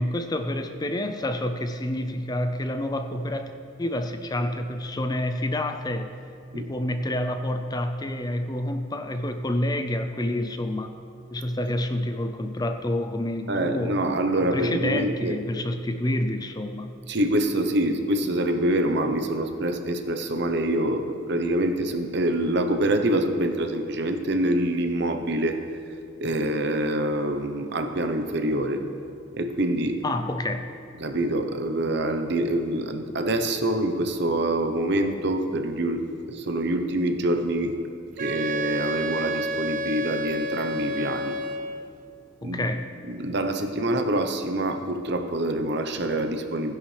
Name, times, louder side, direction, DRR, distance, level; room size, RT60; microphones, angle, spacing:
voice 1, 0.0-3.5 3.8-6.1 6.5-11.0 11.3-14.0 14.5-16.9 30.0-30.7 42.4-42.9, left 1 dB, 20° left, 7 dB, 0.5 m, -28 dB
voice 2, 13.5-15.4 17.1-25.6 26.2-28.8 29.3-30.0 31.0-37.8 38.2-41.4 42.4-42.7 43.1-46.8, right 1 dB, 60° right, 7 dB, 0.9 m, -25 dB
Wind instrument woodwind instrument, 38.2-41.9, right 1 dB, 40° right, 0.5 m, -30 dB
16.0 x 10.5 x 3.3 m, 2.4 s
head